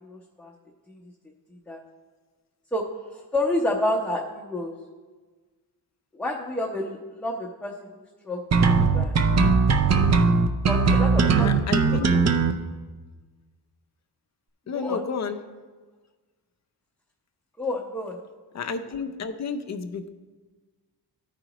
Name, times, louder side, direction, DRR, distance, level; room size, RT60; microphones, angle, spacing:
voice 1, 0.0-0.5 0.9-1.0 1.7-1.8 2.7-2.9 3.1-4.7 6.1-8.4 8.8-9.2 10.7-11.5 11.9-12.2 14.7-15.0 17.6-18.2, left 1 dB, ahead, -5 dB, 0.7 m, -29 dB
sound 1, 8.5-12.5, right 4 dB, 40° right, 0.5 m, -19 dB
voice 2, 11.4-12.1 14.7-15.4 18.5-20.1, left 5 dB, 40° left, 7 dB, 0.5 m, -31 dB
13.5 x 4.9 x 3.0 m, 1.4 s
wide cardioid pair, 135°, 42 cm